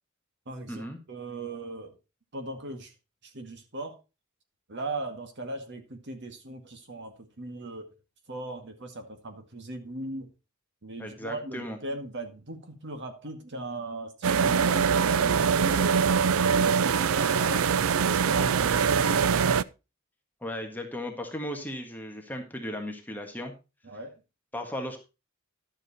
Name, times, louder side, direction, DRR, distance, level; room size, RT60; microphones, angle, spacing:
voice 1, 0.5-1.9 2.3-2.9 3.2-4.0 4.7-7.9 8.3-10.3 10.8-16.0 16.4-17.7 18.0-19.4 23.8-24.1, right 2 dB, 60° right, 6 dB, 2.0 m, -38 dB
voice 2, 11.0-11.8 20.4-23.5 24.5-25.0, left 1 dB, 10° left, 3 dB, 1.6 m, -36 dB
sound 1, 14.2-19.6, right 6 dB, 75° right, 0.5 m, -23 dB
11.5 x 7.5 x 4.2 m, 0.28 s
head